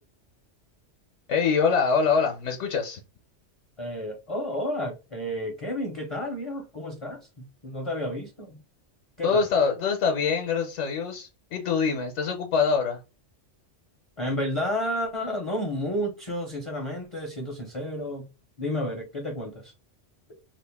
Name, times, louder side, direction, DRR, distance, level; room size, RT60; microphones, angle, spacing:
voice 1, 1.3-3.0 9.2-13.0, left 5 dB, 75° left, 0.9 m, -24 dB
voice 2, 3.8-8.6 9.2-9.5 14.2-18.3 18.6-19.7, left 1 dB, 35° left, 0.5 m, -31 dB
2.9 x 2.4 x 3.4 m
omnidirectional pair, 1.3 m